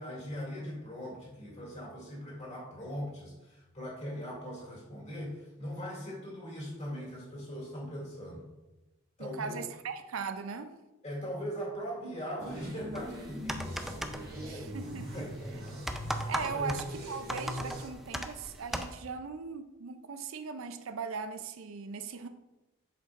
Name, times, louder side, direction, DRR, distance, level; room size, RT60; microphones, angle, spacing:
voice 1, 0.0-8.4 9.2-9.6 11.0-16.8, equal, 30° left, -5 dB, 2.4 m, -41 dB
voice 2, 9.2-10.7 14.5-15.2 16.3-22.3, right 5 dB, 70° right, 9 dB, 0.5 m, -39 dB
sound 1, 12.4-17.9, equal, 45° right, 1.5 m, -41 dB
Keyboard Typing Sounds, 13.0-18.9, equal, ahead, 0.3 m, -39 dB
7.9 x 6.5 x 2.5 m, 1.1 s
head